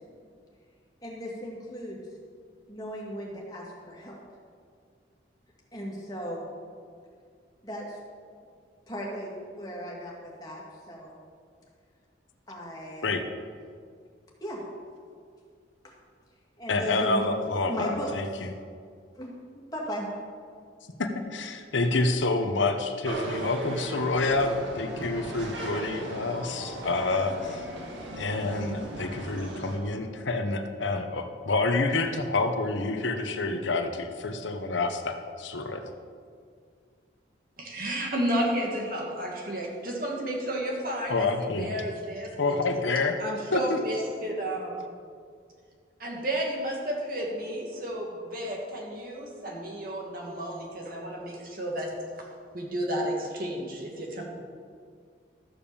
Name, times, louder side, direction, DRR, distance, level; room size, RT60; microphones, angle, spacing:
voice 1, 1.0-2.0 2.7-4.2 5.7-6.4 7.6-8.0 8.9-11.1 12.5-13.2 14.4-14.6 15.8-15.9 16.6-17.2 17.7-18.1 18.4-18.5 19.1-20.1, equal, 20° left, -3 dB, 2.4 m, -37 dB
voice 2, 16.7-18.3 21.0-27.6 28.2-35.9 41.1-41.7 42.4-43.1 43.5-43.8, left 3 dB, 85° left, 6 dB, 1.0 m, -28 dB
sound 1, 23.0-29.8, right 1 dB, 85° right, 2.0 m, -37 dB
voice 3, 37.6-42.6 43.2-44.9 46.0-51.9 52.5-54.2, right 1 dB, 50° right, -1 dB, 2.3 m, -32 dB
13.5 x 7.1 x 7.1 m, 2.1 s
head